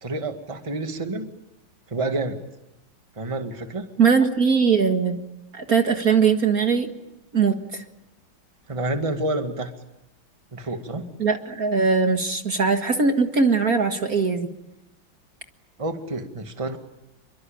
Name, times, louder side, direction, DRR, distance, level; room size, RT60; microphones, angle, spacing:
voice 1, 0.0-1.3 1.9-2.4 3.2-3.9 8.7-9.7 10.5-11.1 15.8-16.8, right 2 dB, 15° right, 6 dB, 1.9 m, -28 dB
voice 2, 4.0-5.2 5.5-6.9 7.3-7.8 11.2-14.5, right 5 dB, 45° right, 6 dB, 2.1 m, -20 dB
28.0 x 24.0 x 8.9 m, 0.89 s
omnidirectional pair, 2.2 m